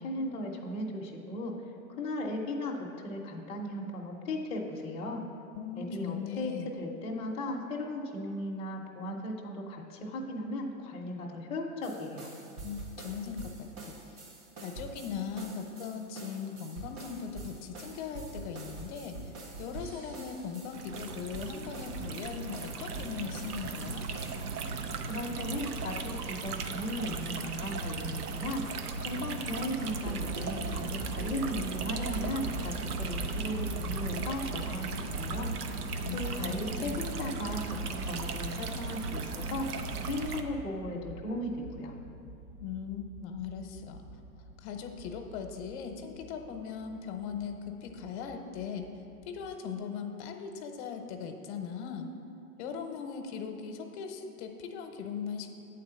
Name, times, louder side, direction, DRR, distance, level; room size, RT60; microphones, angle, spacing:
voice 1, 0.0-1.5 1.9-5.3 5.8-12.3 25.1-28.6 29.0-35.5 36.1-39.7 40.1-41.9, left 1 dB, 15° left, -2 dB, 0.7 m, -36 dB
voice 2, 5.5-6.7 12.6-14.2 14.6-19.3 19.6-24.1 36.0-37.0 42.6-44.0 44.6-48.9 49.2-52.1 52.6-55.6, left 6 dB, 50° left, 5 dB, 0.8 m, -39 dB
sound 1, 11.8-24.4, right 3 dB, 65° right, 1.9 m, -46 dB
sound 2, 20.7-40.4, right 4 dB, 85° right, 0.7 m, -37 dB
sound 3, 30.0-49.5, right 2 dB, 35° right, 0.7 m, -41 dB
8.3 x 3.9 x 6.8 m, 2.6 s
hypercardioid pair, 120°, 44 cm